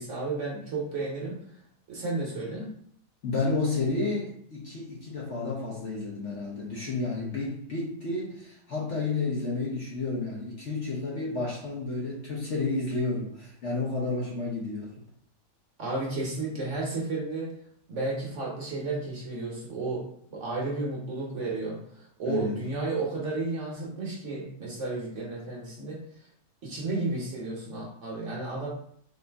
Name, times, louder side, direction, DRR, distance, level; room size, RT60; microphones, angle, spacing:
voice 1, 0.0-1.3 1.9-2.7 15.8-17.5 17.9-20.0 20.3-26.0 26.6-28.7, right 3 dB, 55° right, -3 dB, 1.0 m, -32 dB
voice 2, 3.2-14.9 22.2-22.5, left 3 dB, 55° left, -4 dB, 1.0 m, -31 dB
3.9 x 2.6 x 3.3 m, 0.66 s
omnidirectional pair, 1.8 m